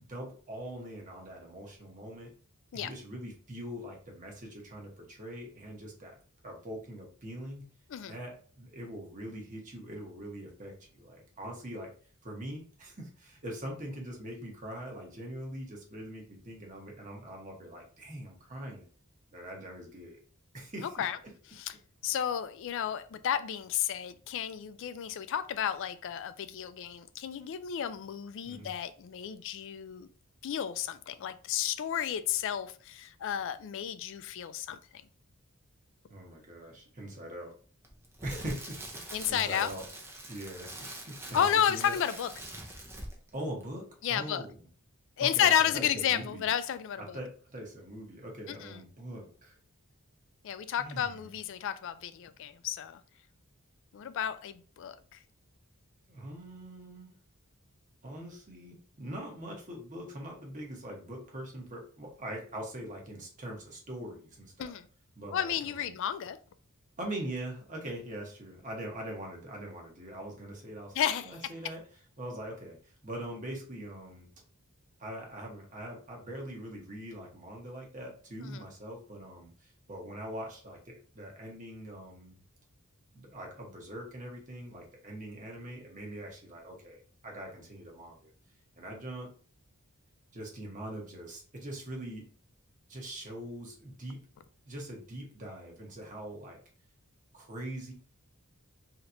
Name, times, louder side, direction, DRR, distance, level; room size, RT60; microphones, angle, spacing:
voice 1, 0.0-2.3 2.7-6.2 6.4-7.6 8.1-11.9 12.2-18.8 19.3-20.2 20.5-21.1 28.4-28.7 36.1-37.5 38.2-39.8 40.3-42.0 43.3-44.6 45.2-46.5 47.0-49.6 50.8-51.3 56.1-57.1 58.0-64.7 65.2-65.9 67.0-71.8 72.2-74.3 75.0-82.3 83.1-88.3 88.7-89.3 90.3-92.2 92.9-94.2 94.6-96.6 97.3-97.9, right 1 dB, 35° right, 1.0 m, -42 dB
voice 2, 20.8-21.2 21.5-21.7 22.0-30.1 30.4-34.8 39.1-39.7 41.3-42.3 44.0-44.4 45.2-47.2 48.5-48.8 50.4-53.0 53.9-55.2 64.6-64.9 65.3-66.4 70.9-71.5 78.4-78.6, left 9 dB, 60° left, 0.3 m, -32 dB
Crackle, 37.8-43.3 43.6-43.8, right 1 dB, 10° right, 0.5 m, -44 dB
3.2 x 2.8 x 2.5 m
head